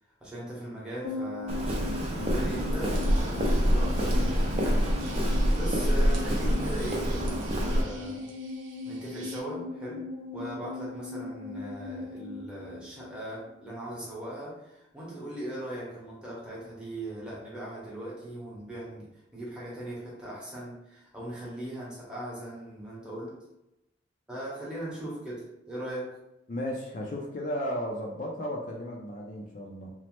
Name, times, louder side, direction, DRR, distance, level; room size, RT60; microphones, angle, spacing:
voice 1, 0.2-4.9 5.2-8.3 8.8-10.1 10.3-23.3 24.3-26.1, right 1 dB, 5° right, -7 dB, 0.8 m, -39 dB
sound 1, 1.0-13.6 13.8-13.9, left 3 dB, 75° left, 0.8 m, -39 dB
Walk footsteps, 1.5-7.8, equal, 30° right, 0.4 m, -26 dB
sound 2, 2.9-9.4, right 4 dB, 85° right, 0.6 m, -50 dB
voice 2, 26.5-29.9, equal, 45° left, -1 dB, 0.4 m, -34 dB
2.9 x 2.0 x 2.9 m, 0.90 s
head